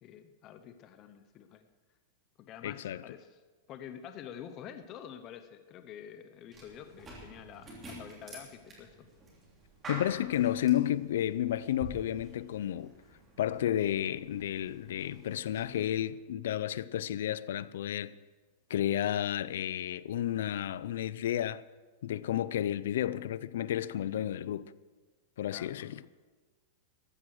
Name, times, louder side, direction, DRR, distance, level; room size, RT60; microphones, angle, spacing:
voice 1, 0.0-1.7 2.4-3.4 3.7-9.1 25.5-26.0, left 9 dB, 25° left, 0.7 m, -48 dB
voice 2, 2.6-3.0 9.9-12.9 13.4-18.1 18.7-21.6 22.0-24.7 25.4-26.0, left 11 dB, 75° left, 0.5 m, -31 dB
sound 1, 6.5-16.0, right 1 dB, 15° right, 3.2 m, -49 dB
14.5 x 11.0 x 6.3 m
supercardioid pair, 170°, 0 cm